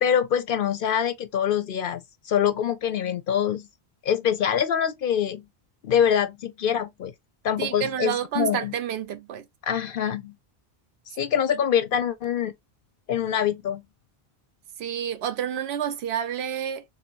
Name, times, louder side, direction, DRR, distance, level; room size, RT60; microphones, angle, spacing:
voice 1, 0.0-3.7 4.0-5.5 5.8-7.1 7.4-8.7 9.6-10.3 11.2-12.5 13.1-13.8, left 9 dB, 65° left, 0.7 m, -24 dB
voice 2, 7.6-9.4 11.5-11.6 14.8-16.8, right 9 dB, 85° right, 0.9 m, -29 dB
3.5 x 2.6 x 4.4 m
omnidirectional pair, 1.0 m